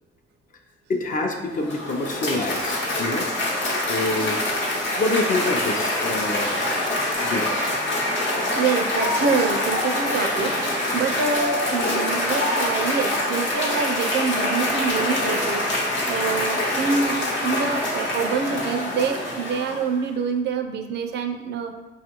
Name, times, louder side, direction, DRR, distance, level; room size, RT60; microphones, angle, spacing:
voice 1, 0.9-3.3 3.9-4.4 5.0-6.7 7.2-7.5, left 2 dB, 45° left, 2 dB, 0.6 m, -26 dB
Cheering / Applause, 1.4-20.0, left 1 dB, 65° left, 0.9 m, -25 dB
voice 2, 8.2-17.2 17.4-21.7, right 5 dB, 60° right, 6 dB, 0.4 m, -26 dB
5.2 x 2.4 x 2.9 m, 1.1 s
cardioid pair, 90°, 20 cm